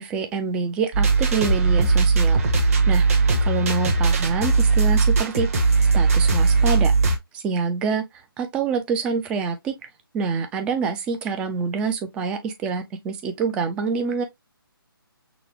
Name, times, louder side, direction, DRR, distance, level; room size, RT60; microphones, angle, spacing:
voice 1, 0.0-3.0 3.4-5.5 5.9-6.9 7.3-8.0 8.4-9.7 10.1-14.2, right 5 dB, 10° right, 0.4 m, -26 dB
sound 1, 0.9-7.2, right 4 dB, 35° right, 1.1 m, -19 dB
6.0 x 2.2 x 3.0 m
figure-of-eight pair, 150°, 12 cm